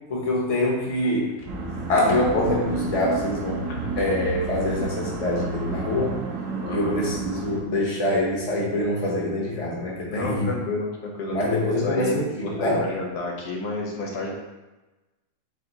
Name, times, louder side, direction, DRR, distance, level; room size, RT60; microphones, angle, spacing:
voice 1, 0.1-1.4 1.9-3.6 4.0-6.2 6.7-10.5 11.3-12.3 12.6-12.8, left 1 dB, 30° left, -3 dB, 0.7 m, -24 dB
sound 1, 1.5-7.6, right 3 dB, 60° right, 1.0 m, -30 dB
voice 2, 3.7-4.0 6.6-7.0 10.0-14.3, left 2 dB, 90° left, -1 dB, 1.5 m, -30 dB
3.5 x 3.4 x 3.9 m, 1.1 s
omnidirectional pair, 1.7 m